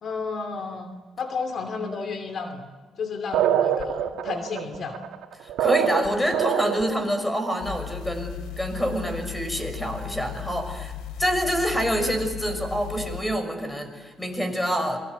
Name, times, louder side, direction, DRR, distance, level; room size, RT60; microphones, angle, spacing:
voice 1, 0.0-0.9 1.2-2.7 3.0-5.0, left 4 dB, 55° left, 7 dB, 2.7 m, -32 dB
sound 1, 3.3-7.0, right 10 dB, 85° right, 2.1 m, -24 dB
voice 2, 5.4-10.9 11.2-15.0, equal, 10° left, 7 dB, 6.4 m, -26 dB
sound 2, 7.6-13.2, left 9 dB, 90° left, 2.8 m, -36 dB
28.5 x 23.5 x 8.3 m, 1.4 s
cardioid pair, 90°, 0 cm